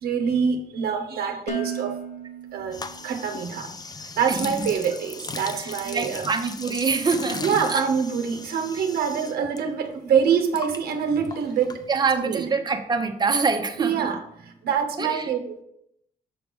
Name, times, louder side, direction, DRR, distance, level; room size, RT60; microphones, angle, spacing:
voice 1, 0.0-2.0 2.5-3.7 4.2-6.3 7.4-11.8 12.2-12.4 13.8-15.6, right 7 dB, 90° right, 5 dB, 0.8 m, -25 dB
Dishes pots and pans, 1.5-3.5, right 5 dB, 45° left, 0.8 m, -34 dB
sound 1, 2.7-9.6 9.9-12.3, left 3 dB, 25° left, 0.5 m, -38 dB
voice 2, 4.3-4.7 5.6-7.4 7.7-7.9 11.9-13.9 15.0-15.3, right 4 dB, 25° right, 5 dB, 0.7 m, -25 dB
7.0 x 3.4 x 5.1 m, 0.75 s
cardioid pair, 80°, 16 cm